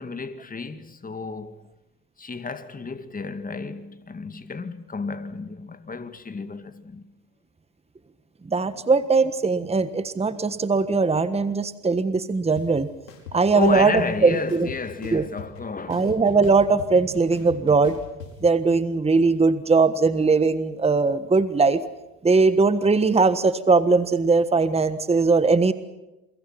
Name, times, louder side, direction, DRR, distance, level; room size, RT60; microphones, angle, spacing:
voice 1, 0.0-1.6 2.2-7.0 13.5-16.1, left 4 dB, 20° left, 2.2 m, -31 dB
voice 2, 8.5-12.9 13.3-13.9 14.2-14.7 15.1-15.2 15.9-18.0 18.4-21.8 22.2-25.7, right 4 dB, 15° right, 1.4 m, -20 dB
sound 1, 12.6-12.7 13.1-14.1 14.5-15.6 15.9-18.3, left 7 dB, 85° left, 5.2 m, -40 dB
28.5 x 23.5 x 5.9 m
hypercardioid pair, 80°, 47 cm